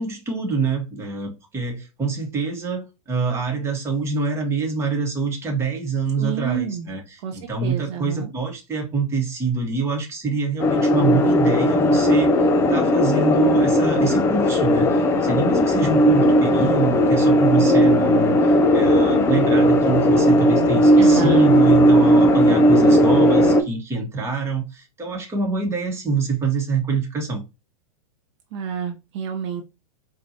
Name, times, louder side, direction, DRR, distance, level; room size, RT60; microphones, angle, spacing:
voice 1, 0.0-27.4, right 4 dB, 15° right, 1.1 m, -25 dB
voice 2, 6.2-6.9 7.2-8.3 21.0-21.5 28.5-29.6, right 8 dB, 55° right, 0.6 m, -29 dB
sound 1, 10.6-23.6, equal, 15° left, 0.3 m, -16 dB
4.4 x 2.3 x 2.7 m
hypercardioid pair, 135°, 18 cm